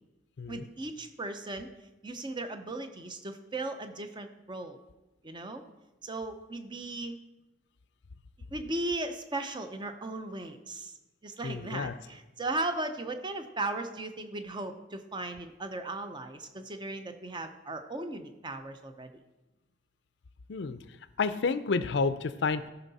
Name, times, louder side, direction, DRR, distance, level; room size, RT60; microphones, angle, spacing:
voice 1, 0.5-1.7 2.0-4.8 5.2-5.6 6.0-7.2 8.5-10.9 11.2-19.1, right 2 dB, 25° right, 7 dB, 0.7 m, -37 dB
voice 2, 11.4-11.9 20.5-20.8 21.2-22.7, left 4 dB, 65° left, 13 dB, 0.5 m, -30 dB
13.5 x 5.6 x 4.1 m, 1.0 s
head